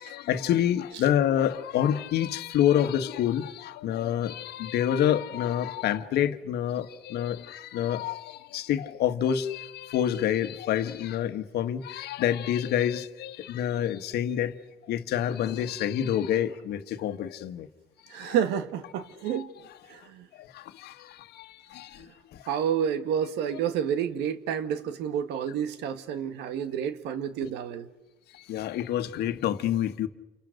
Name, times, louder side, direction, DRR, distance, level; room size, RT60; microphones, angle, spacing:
voice 1, 0.0-14.6 14.8-17.7 18.2-18.4 19.3-19.5 20.3-22.1 22.3-22.5 28.3-30.1, left 10 dB, 75° left, 1.4 m, -28 dB
voice 2, 18.1-19.5 19.9-20.3 22.0-22.1 22.5-27.9, right 8 dB, 85° right, 1.7 m, -29 dB
30.0 x 28.5 x 6.5 m
cardioid pair, 110°, 17 cm